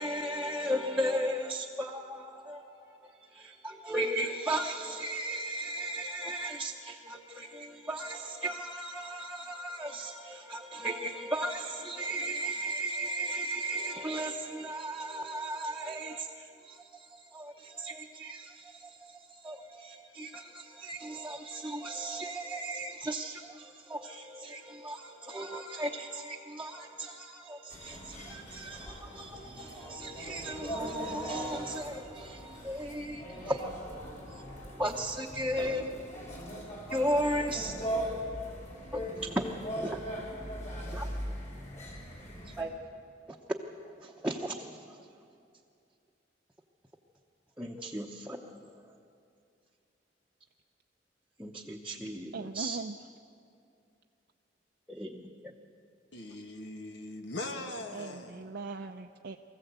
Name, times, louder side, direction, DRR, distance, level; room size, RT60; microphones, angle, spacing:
voice 1, 0.0-36.0 36.9-38.2 38.9-39.4 39.8-40.0 40.9-41.1 42.5-42.7 44.0-45.0 47.6-48.7 51.4-52.8 54.9-55.2, right 1 dB, 5° right, 0.9 m, -36 dB
sound 1, 27.7-42.6, equal, 45° left, 4.6 m, -40 dB
voice 2, 52.3-53.0 57.9-59.4, right 3 dB, 65° right, 0.6 m, -40 dB
voice 3, 56.1-58.4, left 2 dB, 80° left, 2.0 m, -40 dB
23.5 x 15.0 x 8.1 m
head